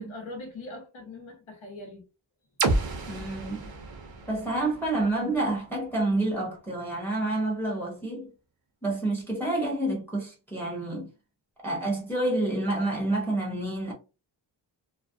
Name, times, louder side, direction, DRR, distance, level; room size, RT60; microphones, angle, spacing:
voice 1, 0.0-2.1, left 2 dB, 80° left, 0.9 m, -41 dB
sound 1, 2.6-6.5, right 3 dB, 50° right, 0.6 m, -32 dB
voice 2, 3.1-3.7 4.3-8.3 8.8-11.1 11.6-13.9, right 2 dB, 5° left, 0.7 m, -28 dB
2.3 x 2.0 x 2.6 m
wide cardioid pair, 170°, 47 cm